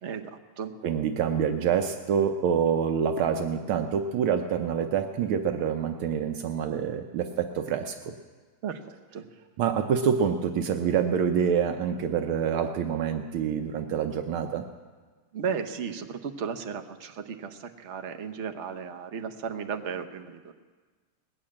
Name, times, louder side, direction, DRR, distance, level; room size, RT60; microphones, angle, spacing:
voice 1, 0.0-0.7 8.6-9.3 15.3-20.5, right 6 dB, 55° right, 6 dB, 0.8 m, -35 dB
voice 2, 0.8-8.1 9.6-14.6, right 7 dB, 80° right, 6 dB, 1.5 m, -26 dB
19.5 x 7.5 x 8.6 m, 1.4 s
omnidirectional pair, 2.3 m